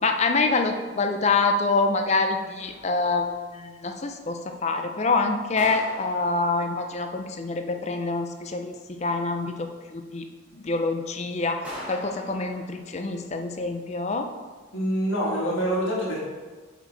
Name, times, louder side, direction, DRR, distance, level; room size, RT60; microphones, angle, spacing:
voice 1, 0.0-8.7 9.0-10.2 10.5-14.3, left 3 dB, 30° left, 6 dB, 0.5 m, -26 dB
sound 1, 2.6-3.5 5.6-7.1 11.6-13.2, equal, 5° right, 1.3 m, -41 dB
voice 2, 14.7-16.2, equal, 75° left, -5 dB, 1.8 m, -25 dB
6.7 x 4.5 x 4.0 m, 1.4 s
head